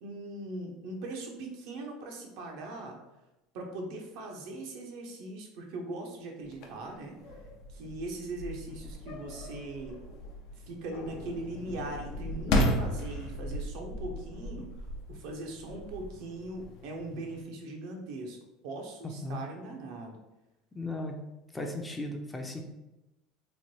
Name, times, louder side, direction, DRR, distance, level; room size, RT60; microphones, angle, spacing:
voice 1, 0.0-3.0 3.5-7.1 7.7-10.0 10.7-14.7 15.1-18.4 18.6-20.2, right 2 dB, 70° right, 1 dB, 0.6 m, -40 dB
sound 1, 6.5-17.4, left 1 dB, 65° left, 0.5 m, -35 dB
voice 2, 20.7-21.1 21.5-22.6, left 2 dB, 15° left, 3 dB, 0.5 m, -36 dB
3.0 x 2.1 x 2.9 m, 0.98 s
supercardioid pair, 95°, 0 cm